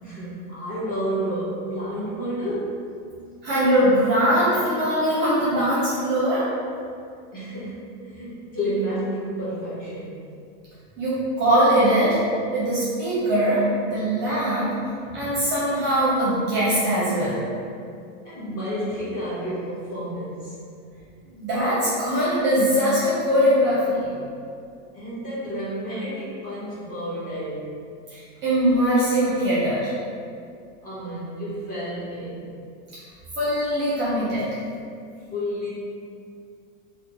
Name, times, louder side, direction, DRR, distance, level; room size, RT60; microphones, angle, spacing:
voice 1, 0.0-2.8 7.3-10.2 15.0-15.4 18.2-20.6 24.9-27.9 30.8-32.5 35.3-35.7, equal, 20° left, -10 dB, 0.8 m, -30 dB
voice 2, 3.4-6.5 11.0-12.2 12.5-14.7 15.1-17.4 21.3-24.2 28.1-29.9 33.4-34.5, equal, 25° right, -8 dB, 0.6 m, -21 dB
2.5 x 2.1 x 2.9 m, 2.4 s
supercardioid pair, 140°, 41 cm